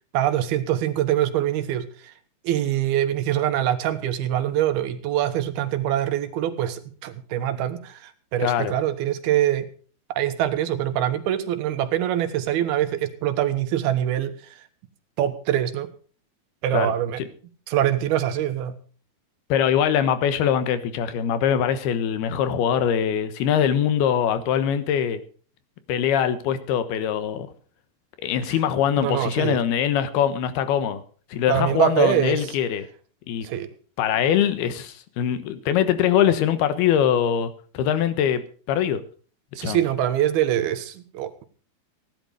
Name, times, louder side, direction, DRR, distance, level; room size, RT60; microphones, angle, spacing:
voice 1, 0.1-2.1 2.4-9.7 10.1-14.6 15.2-15.9 16.6-17.2 17.7-18.8 28.5-28.6 29.0-29.6 31.5-32.5 33.4-33.7 39.6-41.4, right 11 dB, 85° right, 9 dB, 3.2 m, -24 dB
voice 2, 8.4-8.7 16.7-16.9 19.5-25.2 25.9-27.5 28.2-31.0 31.3-32.9 33.3-33.5 34.0-39.0 39.6-39.8, left 9 dB, 85° left, 11 dB, 3.2 m, -22 dB
16.5 x 11.5 x 5.2 m, 0.42 s
omnidirectional pair, 4.4 m